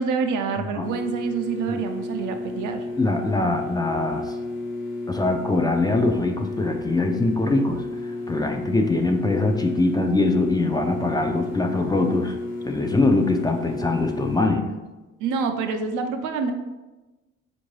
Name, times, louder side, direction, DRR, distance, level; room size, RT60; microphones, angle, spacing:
voice 1, 0.0-2.9 15.2-16.5, right 5 dB, 80° right, 6 dB, 0.5 m, -27 dB
voice 2, 0.6-0.9 1.7-1.8 3.0-4.4 5.1-7.8 8.3-14.7, left 2 dB, 15° left, 3 dB, 0.4 m, -23 dB
sound 1, 0.8-14.4, left 2 dB, 85° left, 1.1 m, -32 dB
4.4 x 2.6 x 3.1 m, 1.1 s
cardioid pair, 90°, 30 cm